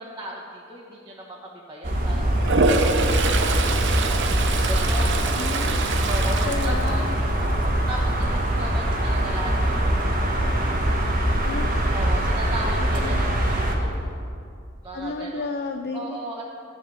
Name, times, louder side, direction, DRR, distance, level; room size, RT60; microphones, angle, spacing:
voice 1, 0.0-4.2 4.7-5.2 6.0-7.0 7.9-10.4 11.9-13.9 14.8-15.5 15.9-16.4, right 1 dB, 20° right, -7 dB, 1.2 m, -36 dB
sound 1, 1.8-13.7, right 1 dB, 45° right, 1.3 m, -23 dB
Toilet flush, 2.4-7.6 8.0-8.4 12.8-12.9 13.2-13.9, right 3 dB, 60° right, 0.8 m, -26 dB
voice 2, 5.4-5.9 6.4-7.2 11.4-11.7 12.8-13.2 14.9-16.2, left 3 dB, 50° left, 6 dB, 0.5 m, -32 dB
13.5 x 4.9 x 7.8 m, 2.4 s
head